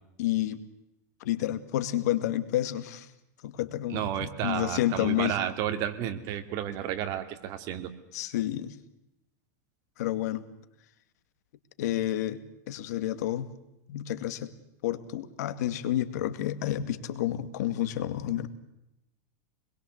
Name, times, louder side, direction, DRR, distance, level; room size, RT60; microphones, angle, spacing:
voice 1, 0.2-0.6 1.2-3.1 3.4-5.4 8.1-8.8 10.0-10.5 11.8-12.4 12.7-13.5 13.9-14.5 14.8-18.5, left 13 dB, 70° left, 11 dB, 2.2 m, -30 dB
voice 2, 3.9-7.9, right 10 dB, 40° right, 8 dB, 2.5 m, -32 dB
26.5 x 22.0 x 8.0 m, 0.84 s
supercardioid pair, 155°, 9 cm